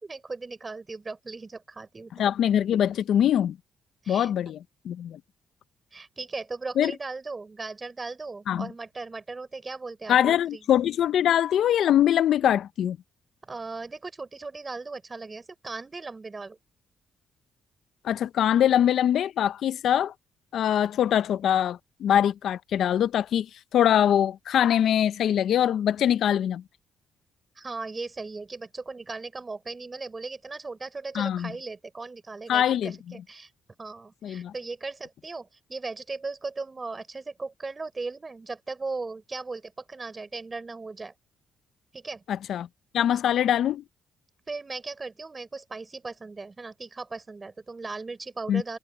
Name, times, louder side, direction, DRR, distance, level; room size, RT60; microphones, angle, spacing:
voice 1, 0.0-2.3 4.0-4.3 5.9-10.6 13.5-16.6 27.6-33.5 33.8-41.1 41.9-42.2 44.5-48.8, right 3 dB, 25° right, 6.3 m, -37 dB
voice 2, 2.2-3.6 4.1-5.2 6.8-6.9 8.5-8.7 10.1-13.0 18.0-20.1 20.5-23.5 23.7-26.6 31.1-31.5 32.5-32.9 34.2-34.5 42.3-42.7 42.9-43.8 48.5-48.6, left 10 dB, 70° left, 0.5 m, -23 dB
cardioid pair, 90°, 0 cm